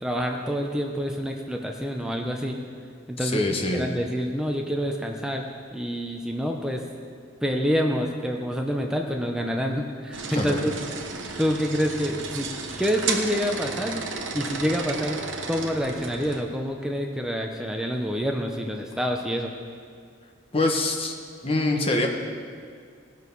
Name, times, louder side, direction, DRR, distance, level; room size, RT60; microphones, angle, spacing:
voice 1, 0.0-2.6 3.1-3.4 3.7-6.8 7.4-12.5 12.8-14.1 14.3-19.5, equal, 5° right, 2 dB, 0.6 m, -27 dB
voice 2, 3.2-3.9 10.3-10.6 20.5-21.2 21.4-22.1, left 2 dB, 30° left, 1 dB, 1.0 m, -24 dB
sound 1, 10.1-16.4, right 4 dB, 75° right, 1.1 m, -33 dB
17.5 x 6.5 x 5.4 m, 2.1 s
head